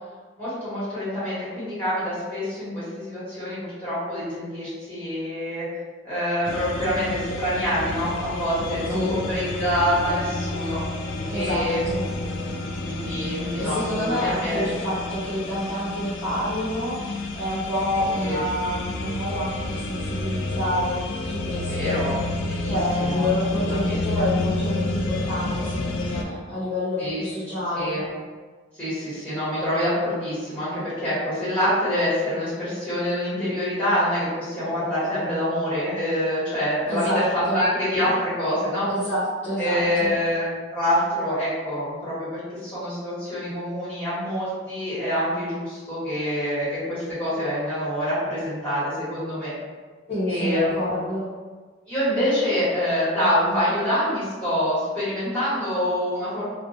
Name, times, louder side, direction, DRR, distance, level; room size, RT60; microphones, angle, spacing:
voice 1, 0.4-5.6 6.0-10.8 11.3-11.8 12.8-14.7 18.0-18.4 21.6-22.2 22.5-23.3 23.5-24.1 27.0-27.2 27.7-28.1 28.7-38.9 39.6-49.5 50.3-51.0 51.9-56.5, equal, 10° left, -12 dB, 1.3 m, -26 dB
sound 1, 6.5-26.2, left 2 dB, 75° left, 0.3 m, -30 dB
voice 2, 8.9-9.2 11.3-12.0 13.6-22.0 22.7-28.0 36.9-37.2 37.4-37.6 38.9-40.2 50.1-51.3, left 1 dB, 35° left, -12 dB, 0.8 m, -28 dB
2.5 x 2.2 x 2.7 m, 1.4 s
head